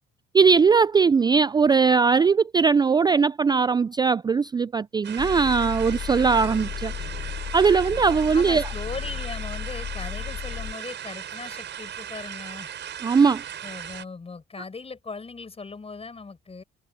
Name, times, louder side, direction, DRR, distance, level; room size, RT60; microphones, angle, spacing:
voice 1, 0.3-6.9 7.5-8.6 13.0-13.4, right 5 dB, 20° right, 0.3 m, -20 dB
sound 1, 5.0-14.1, right 9 dB, 65° right, 6.0 m, -37 dB
sound 2, 5.2-10.7, left 9 dB, 65° left, 2.0 m, -34 dB
voice 2, 8.3-12.7 13.6-16.6, left 4 dB, 30° left, 7.1 m, -38 dB
cardioid pair, 90°, 20 cm